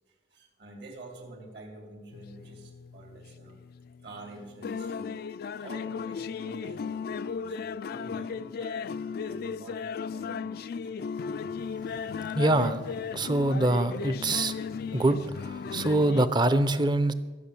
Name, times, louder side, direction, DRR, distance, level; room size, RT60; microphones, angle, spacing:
voice 1, 0.3-3.6 4.0-5.2 5.6-11.3, right 2 dB, 60° right, 2 dB, 2.7 m, -48 dB
sound 1, 2.1-16.3, left 5 dB, 55° left, 0.3 m, -36 dB
voice 2, 12.3-12.8 13.1-14.5 14.9-17.1, right 2 dB, 25° right, 12 dB, 0.6 m, -24 dB
14.5 x 6.2 x 8.4 m, 1.3 s
head